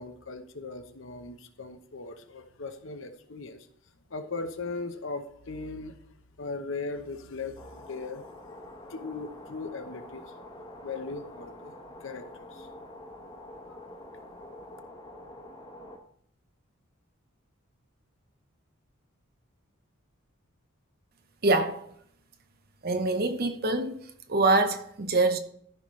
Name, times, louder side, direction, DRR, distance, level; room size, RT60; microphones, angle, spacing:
voice 1, 0.0-3.7 4.1-8.3 8.8-10.3 10.8-11.7 12.0-12.9 13.7-13.8, left 3 dB, 60° left, 0.9 m, -39 dB
sound 1, 7.6-16.0, left 1 dB, 20° left, 1.1 m, -46 dB
voice 2, 21.4-21.8 22.8-24.0 24.3-25.4, right 2 dB, 45° right, 0.8 m, -24 dB
14.0 x 5.8 x 3.2 m
head